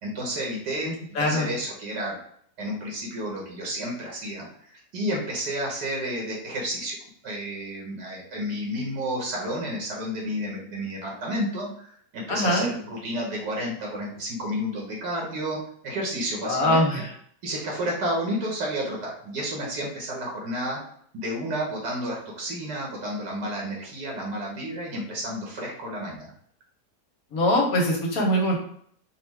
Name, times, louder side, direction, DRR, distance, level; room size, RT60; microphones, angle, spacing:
voice 1, 0.0-0.9 1.2-2.2 2.6-7.0 7.2-15.6 15.8-17.0 17.4-20.8 21.1-26.3, equal, 85° right, -2 dB, 1.8 m, -31 dB
voice 2, 0.8-1.5 12.3-12.7 16.4-17.1 27.3-28.6, left 1 dB, 60° left, -1 dB, 1.5 m, -23 dB
4.3 x 2.4 x 4.6 m, 0.63 s
omnidirectional pair, 1.8 m